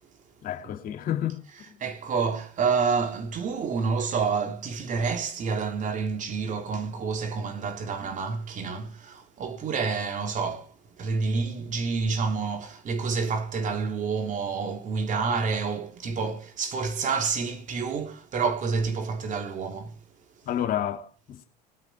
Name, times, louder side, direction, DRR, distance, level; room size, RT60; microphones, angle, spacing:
voice 1, 0.4-1.8 20.4-21.4, left 10 dB, 45° left, 3.0 m, -30 dB
voice 2, 1.8-20.0, right 5 dB, 35° right, 3.5 m, -28 dB
21.0 x 9.5 x 4.6 m
figure-of-eight pair, 65°, 21 cm